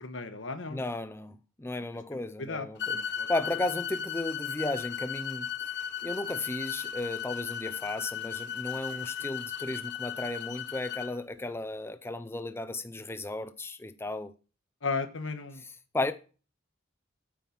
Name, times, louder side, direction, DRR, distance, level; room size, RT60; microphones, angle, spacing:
voice 1, 0.0-0.8 2.1-2.7 2.9-3.3 8.9-9.1 14.8-15.6, left 4 dB, 75° left, 1.4 m, -35 dB
voice 2, 0.7-3.0 3.3-14.3 15.6-16.1, left 2 dB, 15° left, 0.6 m, -35 dB
sound 1, 2.8-11.1, left 8 dB, 60° left, 1.3 m, -36 dB
9.0 x 8.9 x 5.8 m
head